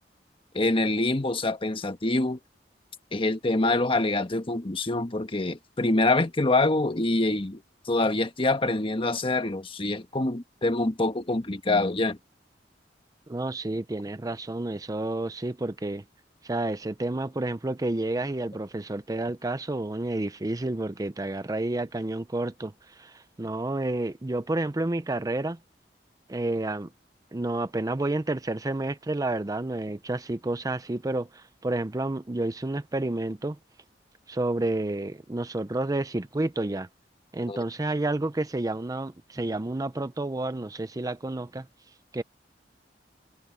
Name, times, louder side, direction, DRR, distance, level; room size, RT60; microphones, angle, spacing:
voice 1, 0.5-2.4 3.1-12.2 37.5-37.6, left 2 dB, 30° left, 1.2 m, -25 dB
voice 2, 13.3-16.0 16.4-25.6 26.3-26.9 27.3-33.6 34.3-36.9 37.3-41.7 42.1-42.2, right 2 dB, 20° right, 0.5 m, -30 dB
head